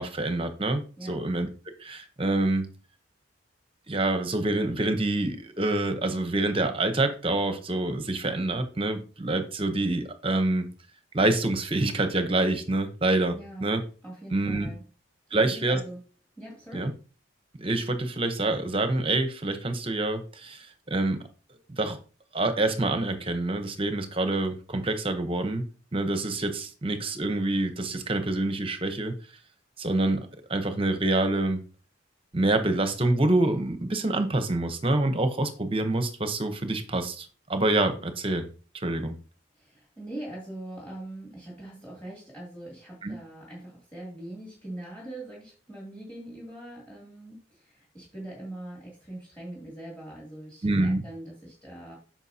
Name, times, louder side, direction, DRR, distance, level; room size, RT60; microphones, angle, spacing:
voice 1, 0.0-1.5 1.8-2.7 3.9-10.7 11.1-13.3 13.6-13.8 14.3-14.7 15.3-15.8 16.7-16.9 17.6-21.2 21.8-22.0 22.3-25.6 25.9-29.1 29.8-31.6 32.3-38.5 38.7-39.1 43.0-43.2 50.6-51.0, right 2 dB, 25° right, 8 dB, 0.8 m, -26 dB
voice 2, 13.3-13.7 14.0-14.8 15.3-16.0 16.4-16.9 39.5-51.9, right 1 dB, 5° left, -4 dB, 2.6 m, -42 dB
9.1 x 5.9 x 2.8 m, 0.36 s
head